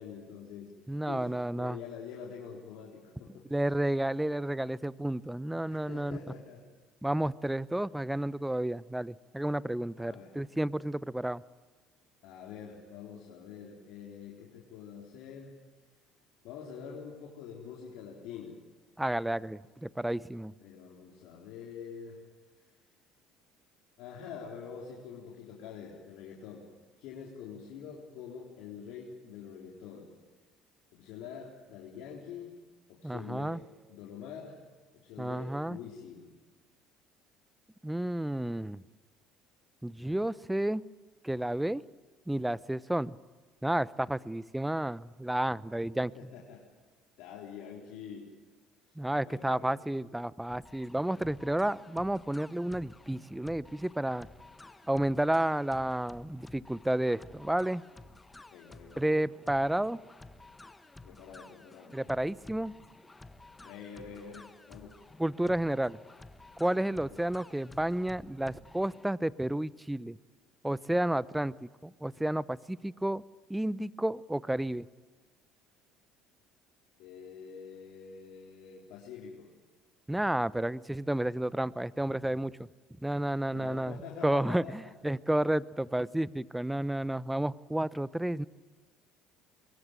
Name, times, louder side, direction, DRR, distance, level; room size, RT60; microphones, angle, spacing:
voice 1, 0.0-0.7 1.1-3.5 5.7-6.6 10.0-10.3 12.2-15.5 16.4-18.6 20.6-22.2 24.0-26.6 27.0-30.1 30.9-32.5 32.9-33.6 33.9-34.6 34.9-36.3 46.0-46.7 47.2-48.3 49.2-49.8 58.5-59.0 61.0-62.0 63.6-65.0 77.0-79.5 83.5-84.8, left 7 dB, 70° left, -2 dB, 4.0 m, -46 dB
voice 2, 0.9-1.8 3.5-6.2 7.0-11.4 19.0-20.5 33.0-33.6 35.2-35.8 37.8-38.8 39.8-40.8 41.2-41.8 42.3-43.2 43.6-46.1 49.0-54.3 54.9-57.8 59.0-60.0 61.9-62.7 65.2-66.0 66.6-70.2 70.6-71.5 71.8-73.2 73.5-74.9 80.1-82.5 83.0-88.5, right 1 dB, 5° right, 19 dB, 0.8 m, -31 dB
sound 1, 50.5-69.1, left 2 dB, 15° left, 1.5 m, -53 dB
23.0 x 23.0 x 9.1 m, 1.3 s
hypercardioid pair, 70°, 0 cm